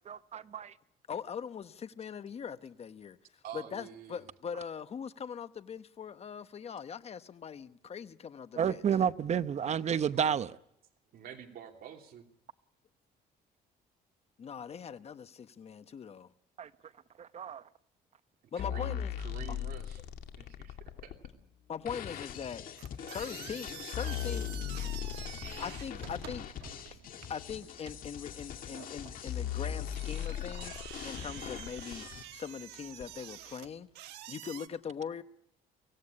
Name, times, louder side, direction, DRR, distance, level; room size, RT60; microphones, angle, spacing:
voice 1, 0.1-0.7 8.6-10.6 16.6-16.7 17.2-17.6, right 8 dB, 40° right, 0.9 m, -30 dB
voice 2, 1.1-8.8 14.4-16.3 18.5-19.2 19.5-19.6 21.7-22.6 23.1-24.5 25.0-25.2 25.6-26.5 26.9-27.0 27.3-32.0 32.3-33.9 34.3-35.2, left 7 dB, 40° left, 1.1 m, -41 dB
voice 3, 3.4-4.2 11.1-12.3 18.6-20.0 20.4-21.1, right 9 dB, 65° right, 3.0 m, -47 dB
sound 1, 18.6-21.3 22.3-22.4 23.2-23.3 23.7-26.7 27.5-27.6 28.5-28.6 29.0-29.1 29.3-32.0 33.0-33.1, left 10 dB, 70° left, 2.3 m, -38 dB
sound 2, 21.9-32.2, left 9 dB, 55° left, 1.9 m, -45 dB
sound 3, 22.8-34.7, right 14 dB, 85° right, 1.2 m, -49 dB
24.5 x 17.0 x 9.8 m
cardioid pair, 110°, 17 cm